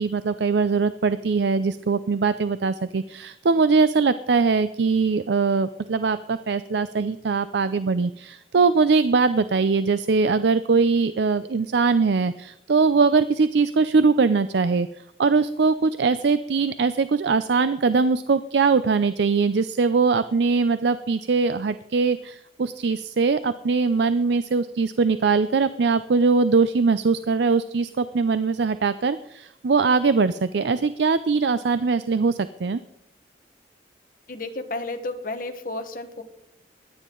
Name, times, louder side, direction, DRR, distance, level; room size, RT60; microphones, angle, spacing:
voice 1, 0.0-14.9 15.2-32.8, right 4 dB, 70° right, 13 dB, 0.5 m, -21 dB
voice 2, 34.3-36.2, left 2 dB, 50° left, 6 dB, 1.3 m, -32 dB
22.5 x 9.3 x 3.9 m, 0.77 s
head